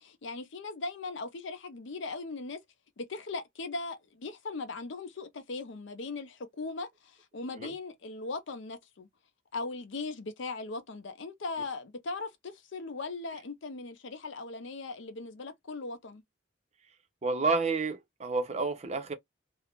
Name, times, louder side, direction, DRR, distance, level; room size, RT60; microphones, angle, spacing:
voice 1, 0.0-2.6 3.0-9.1 9.5-16.2, left 3 dB, 65° left, 0.5 m, -39 dB
voice 2, 17.2-19.1, right 3 dB, 30° right, 0.5 m, -30 dB
2.3 x 2.1 x 2.9 m
head